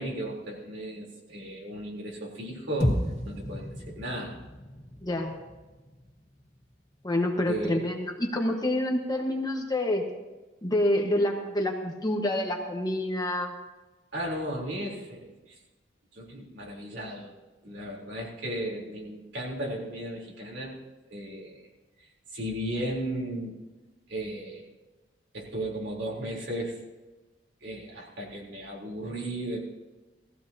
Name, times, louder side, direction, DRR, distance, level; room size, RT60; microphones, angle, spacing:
voice 1, 0.0-3.0 3.3-4.4 7.5-7.8 14.1-15.6 16.1-17.3 17.6-20.8 21.1-21.7 22.3-23.6 24.1-24.7 25.3-26.8 27.6-29.6, right 1 dB, 75° right, -3 dB, 3.7 m, -35 dB
sound 1, 2.8-7.2, equal, 35° left, 3.0 m, -33 dB
voice 2, 5.0-5.3 7.0-10.0 10.6-13.5, left 1 dB, 20° left, 2 dB, 1.4 m, -27 dB
18.5 x 15.5 x 2.9 m, 1.2 s
head